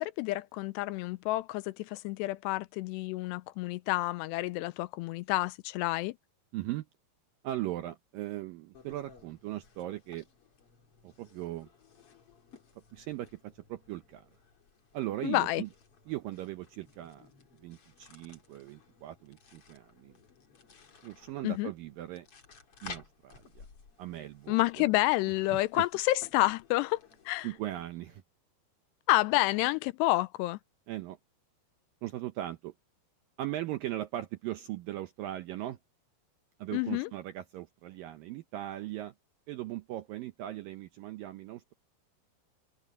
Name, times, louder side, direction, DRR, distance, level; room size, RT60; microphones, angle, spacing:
voice 1, 0.0-6.2 15.2-15.6 21.4-21.7 24.5-27.0 27.3-27.5 29.1-30.6 36.7-37.1, left 19 dB, 85° left, 2.7 m, -29 dB
voice 2, 6.5-6.9 7.4-10.2 11.0-11.7 12.9-14.3 14.9-15.7 16.1-17.3 17.6-20.1 21.0-22.3 22.8-23.7 24.0-24.9 25.5-25.9 27.4-28.2 30.9-31.2 32.0-32.7 33.4-35.8 36.6-39.1 39.5-41.7, right 14 dB, 80° right, 2.0 m, -39 dB
sound 1, 8.7-28.2, left 5 dB, 35° left, 3.1 m, -55 dB
omnidirectional pair, 4.9 m